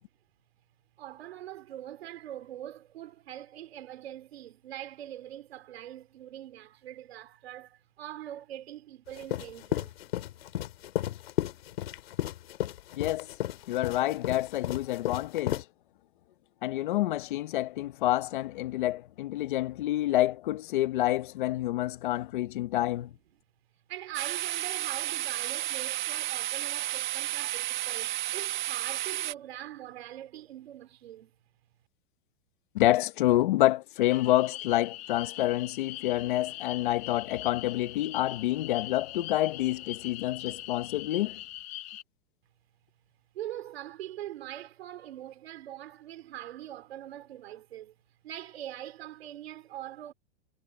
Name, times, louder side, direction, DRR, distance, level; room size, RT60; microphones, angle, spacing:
voice 1, 1.0-9.9 23.9-31.3 43.3-47.9 48.2-50.1, right 12 dB, 70° right, 3.3 m, -43 dB
sound 1, 9.2-15.6, left 13 dB, 65° left, 2.9 m, -33 dB
voice 2, 13.0-13.3 13.7-15.6 16.6-23.1 32.7-41.4, left 15 dB, 50° left, 1.2 m, -28 dB
sound 2, 24.1-29.3, right 15 dB, 45° right, 1.4 m, -32 dB
sound 3, 34.0-42.0, left 15 dB, 15° left, 0.4 m, -42 dB
supercardioid pair, 180°, 32 cm